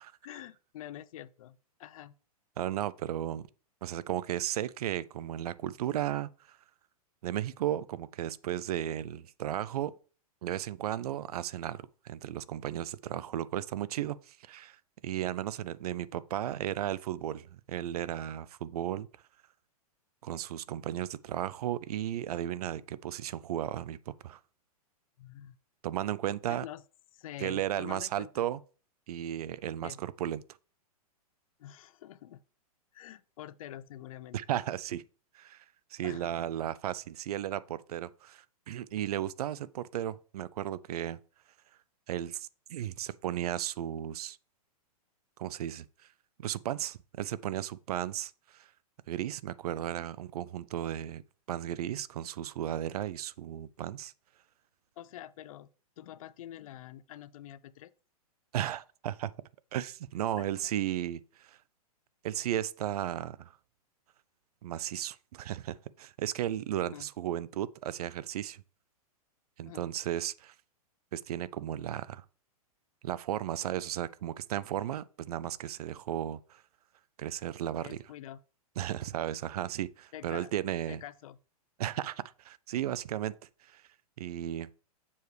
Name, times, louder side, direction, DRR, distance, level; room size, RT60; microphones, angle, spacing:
voice 1, 0.2-2.1 25.2-25.6 26.5-26.8 27.1-28.3 29.8-30.0 31.6-32.4 32.9-34.4 36.0-36.3 55.0-55.7 56.0-57.9 60.4-60.5 66.9-67.1 69.6-69.9 77.8-78.4 80.1-80.5 80.9-81.4, left 12 dB, 65° left, 0.4 m, -46 dB
voice 2, 2.6-3.5 3.8-6.6 7.2-9.9 10.4-19.1 20.2-24.4 25.8-26.6 27.4-28.6 29.1-30.4 34.3-35.0 35.3-35.6 35.9-41.2 42.1-44.4 45.4-45.9 46.4-48.7 49.1-51.2 51.5-54.1 58.5-59.3 59.7-61.6 62.2-63.5 64.6-68.6 69.6-70.5 71.1-72.2 73.0-76.6 77.2-78.0 78.8-81.0 81.8-83.4 83.7-83.8 84.2-84.7, right 11 dB, 75° right, 0.4 m, -35 dB
6.9 x 4.8 x 3.2 m
hypercardioid pair, 150°, 20 cm